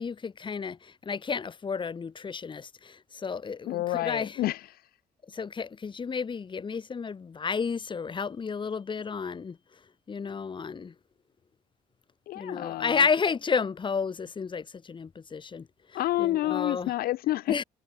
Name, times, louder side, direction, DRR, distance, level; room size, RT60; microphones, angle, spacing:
voice 1, 0.0-4.4 5.3-9.6 10.1-10.9 12.3-16.9 17.5-17.6, left 5 dB, 30° left, 1.6 m, -32 dB
voice 2, 3.7-4.9 12.3-13.1 15.9-17.6, left 15 dB, 65° left, 0.5 m, -29 dB
cardioid pair, 110°, 17 cm